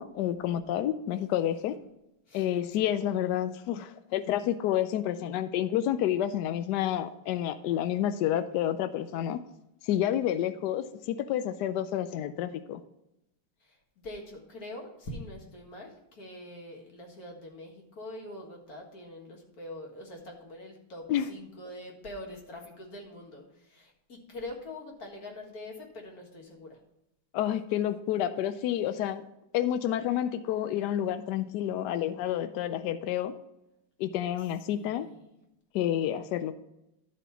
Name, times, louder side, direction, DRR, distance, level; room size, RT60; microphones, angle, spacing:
voice 1, 0.0-1.8 2.3-9.4 9.8-12.8 21.1-21.3 27.3-29.2 29.5-33.3 34.0-35.1 35.7-36.5, left 11 dB, 85° left, 11 dB, 0.9 m, -29 dB
voice 2, 13.6-26.8 34.7-35.2, left 1 dB, 45° left, 1 dB, 2.0 m, -44 dB
12.0 x 4.3 x 5.6 m, 0.87 s
omnidirectional pair, 2.4 m